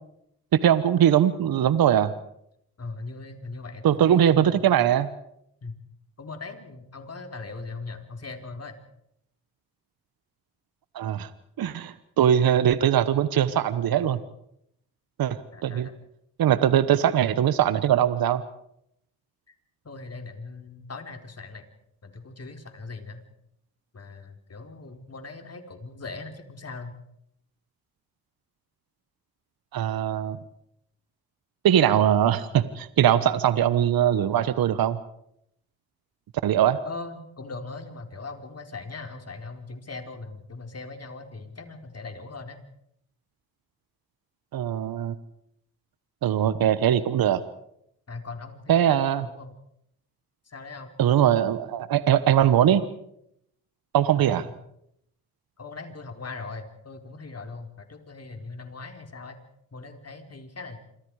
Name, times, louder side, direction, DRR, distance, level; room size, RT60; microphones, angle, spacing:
voice 1, 0.5-2.1 3.8-5.1 10.9-11.3 11.6-14.2 15.2-15.9 16.4-18.4 29.7-30.4 31.6-35.0 36.4-36.8 44.5-45.1 46.2-47.4 48.7-49.2 51.0-52.8 53.9-54.5, right 10 dB, 65° right, 14 dB, 1.3 m, -21 dB
voice 2, 2.8-4.9 5.6-5.8 6.2-8.8 15.5-15.9 19.5-19.6 19.8-21.6 22.0-23.2 23.9-26.9 36.8-42.6 48.1-49.5 50.4-50.9 54.1-54.5 55.6-59.4 59.7-60.8, left 3 dB, 40° left, 5 dB, 4.5 m, -40 dB
27.0 x 25.0 x 5.0 m, 0.75 s
supercardioid pair, 50°, 39 cm